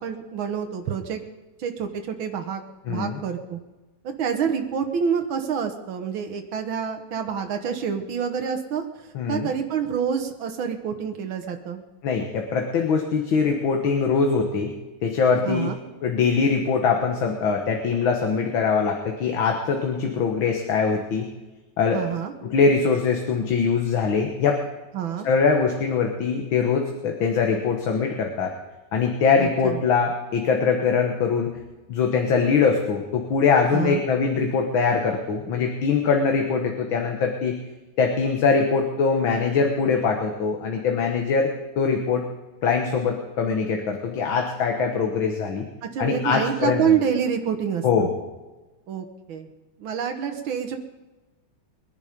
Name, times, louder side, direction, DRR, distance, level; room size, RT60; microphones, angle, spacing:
voice 1, 0.0-1.2 1.6-2.6 2.9-3.6 4.0-8.9 9.3-11.8 15.4-15.8 21.9-22.3 24.9-25.3 29.4-29.8 33.7-34.0 45.8-48.1 48.9-49.5 49.8-50.8, right 7 dB, 85° right, 5 dB, 2.0 m, -27 dB
voice 2, 2.9-3.2 9.2-9.5 12.0-14.7 15.0-15.7 16.0-21.3 21.8-22.0 22.4-24.6 25.2-28.5 28.9-31.5 31.9-37.6 38.0-42.3 42.6-45.7 46.0-46.8 47.8-48.1, left 5 dB, 85° left, 2 dB, 2.2 m, -22 dB
22.0 x 10.5 x 5.2 m, 1.1 s
omnidirectional pair, 2.1 m